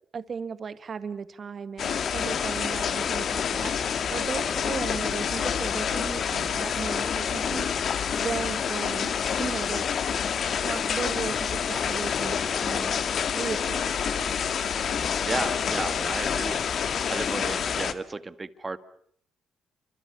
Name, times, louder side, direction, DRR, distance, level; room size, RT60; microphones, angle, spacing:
voice 1, 0.1-7.7 8.2-10.0 10.6-13.0 13.3-14.4 14.7-14.8, right 6 dB, 45° right, 12 dB, 2.1 m, -36 dB
sound 1, 1.8-17.9, left 7 dB, 55° left, 2.0 m, -28 dB
voice 2, 15.2-16.6 17.1-18.8, right 3 dB, 25° right, 12 dB, 1.8 m, -33 dB
29.0 x 25.0 x 7.2 m, 0.65 s
cardioid pair, 90°, 0 cm